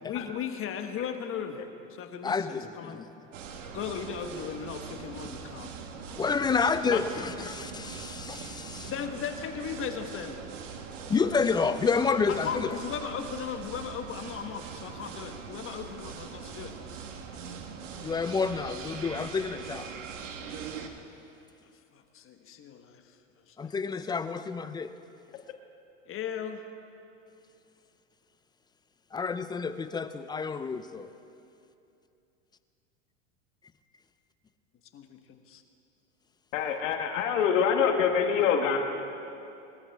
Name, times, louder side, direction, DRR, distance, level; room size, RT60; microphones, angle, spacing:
voice 1, 0.0-1.6 2.0-3.0 3.7-5.8 8.8-10.4 12.3-16.8 21.6-23.0 23.4-23.7 26.1-26.6 34.9-35.6, left 7 dB, 35° left, 6 dB, 1.3 m, -37 dB
voice 2, 2.2-3.1 6.2-8.9 11.1-12.7 18.0-19.9 23.6-24.9 29.1-31.1, left 5 dB, 10° left, 11 dB, 0.4 m, -29 dB
sound 1, 3.3-20.9, right 6 dB, 75° right, 1.6 m, -42 dB
voice 3, 36.5-38.8, left 7 dB, 75° left, 4 dB, 1.5 m, -25 dB
21.5 x 14.0 x 3.5 m, 2.7 s
hypercardioid pair, 110°, 38 cm